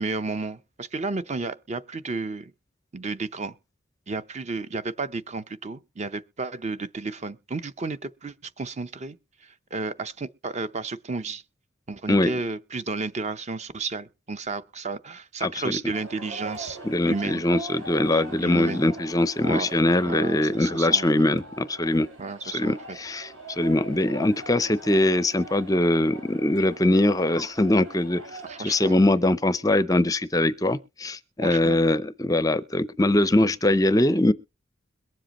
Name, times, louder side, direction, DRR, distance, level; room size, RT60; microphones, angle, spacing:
voice 1, 0.0-2.5 2.9-3.5 4.1-9.2 9.4-11.4 11.9-16.8 17.1-17.4 18.1-18.9 19.4-19.7 20.0-21.1 22.2-22.8 24.0-24.2 28.4-29.0 31.4-31.8, right 3 dB, 30° right, 0.6 m, -32 dB
voice 2, 15.4-15.8 16.8-22.1 22.4-28.2 28.6-34.3, left 1 dB, 15° left, 0.5 m, -22 dB
sound 1, 15.9-28.8, right 3 dB, 70° right, 3.8 m, -42 dB
22.5 x 7.6 x 3.0 m
head